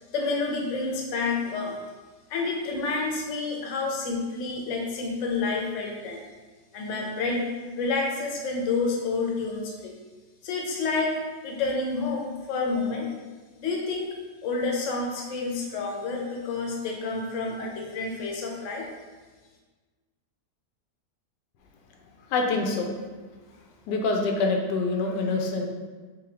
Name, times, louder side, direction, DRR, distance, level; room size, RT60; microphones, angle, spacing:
voice 1, 0.1-1.7 2.3-6.2 6.7-7.5 7.8-9.9 10.4-11.2 11.4-13.1 13.6-14.0 14.4-18.9, left 3 dB, 55° left, 0 dB, 0.9 m, -29 dB
voice 2, 22.3-22.9 23.9-25.6, left 3 dB, 90° left, 2 dB, 1.2 m, -25 dB
3.8 x 3.8 x 2.8 m, 1.3 s
omnidirectional pair, 1.8 m